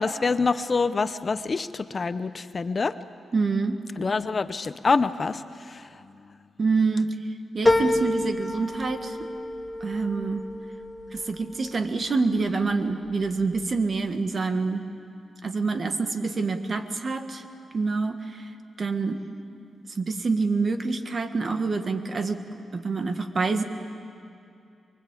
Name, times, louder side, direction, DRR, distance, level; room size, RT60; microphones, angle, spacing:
voice 1, 0.0-3.0 4.0-5.9, left 4 dB, 40° left, 12 dB, 0.8 m, -26 dB
voice 2, 3.3-3.8 6.6-7.2 7.5-9.3 9.8-10.4 11.1-14.9 15.4-17.4 17.7-18.5 18.8-19.2 20.0-22.4 22.7-23.6, right 4 dB, 45° right, 7 dB, 1.7 m, -26 dB
sound 1, 7.6-12.4 12.9-13.6 14.0-14.1, left 1 dB, ahead, 2.2 m, -28 dB
24.0 x 23.5 x 8.4 m, 2.6 s
cardioid pair, 85°, 0 cm